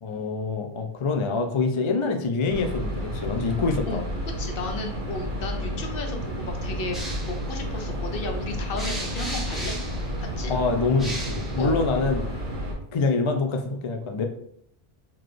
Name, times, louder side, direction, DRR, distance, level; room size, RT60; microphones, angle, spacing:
voice 1, 0.0-4.0 10.5-12.3 12.9-14.2, left 3 dB, 50° left, 5 dB, 0.4 m, -25 dB
sound 1, 2.5-12.7, equal, 55° right, 1.6 m, -31 dB
voice 2, 4.4-9.7 10.2-10.5 11.6-11.8, left 2 dB, 65° left, 3 dB, 0.9 m, -34 dB
sound 2, 6.9-12.5, equal, ahead, 0.9 m, -37 dB
4.0 x 2.9 x 3.2 m, 0.69 s
omnidirectional pair, 1.0 m